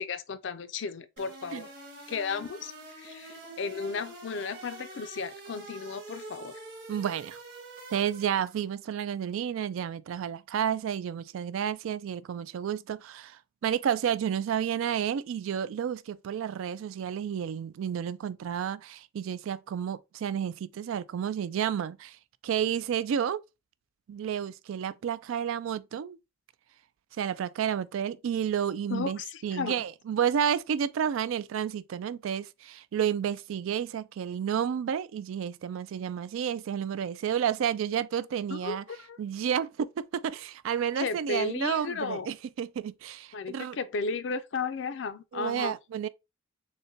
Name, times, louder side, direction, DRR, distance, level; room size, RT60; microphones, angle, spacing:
voice 1, 0.0-1.7 2.1-2.7 3.0-6.6 28.9-29.8 38.5-39.2 41.0-42.3 43.3-45.8, left 4 dB, 65° left, 0.4 m, -34 dB
sound 1, 1.2-8.6, right 3 dB, 50° right, 1.5 m, -46 dB
voice 2, 6.9-7.4 7.9-22.2 22.4-23.4 24.1-26.2 27.2-38.8 39.2-43.8 45.3-46.1, right 8 dB, 80° right, 0.3 m, -31 dB
6.4 x 2.2 x 2.7 m
head